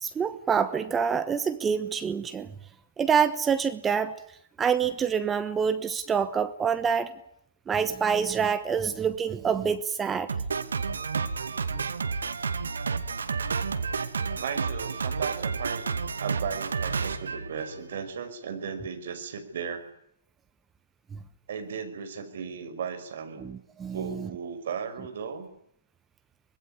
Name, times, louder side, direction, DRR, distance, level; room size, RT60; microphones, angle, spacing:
voice 1, 0.0-2.5 3.0-4.1 4.6-7.1 7.7-10.3 11.7-11.8 21.1-21.2 23.4-24.3, right 7 dB, 15° right, 11 dB, 1.1 m, -26 dB
Drum kit, 10.3-18.1, right 5 dB, 70° right, 2.3 m, -31 dB
voice 2, 14.4-15.9 16.2-19.8 21.5-23.4 23.9-25.5, right 6 dB, 50° right, 8 dB, 5.5 m, -36 dB
24.5 x 20.5 x 9.9 m, 0.74 s
figure-of-eight pair, 125°, 0 cm